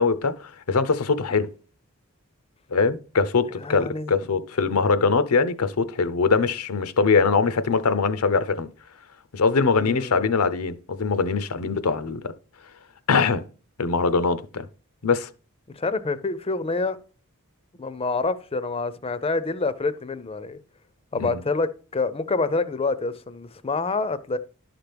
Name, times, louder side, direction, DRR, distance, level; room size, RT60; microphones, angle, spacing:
voice 1, 0.0-1.5 2.7-8.7 9.3-12.2 13.1-13.4 13.8-14.7 15.0-15.3 21.2-21.4, left 4 dB, 75° left, 0.7 m, -22 dB
voice 2, 3.6-4.1 9.7-10.3 15.7-17.0 17.8-20.6 21.1-24.4, left 3 dB, 25° left, 0.5 m, -27 dB
11.5 x 5.9 x 3.4 m
head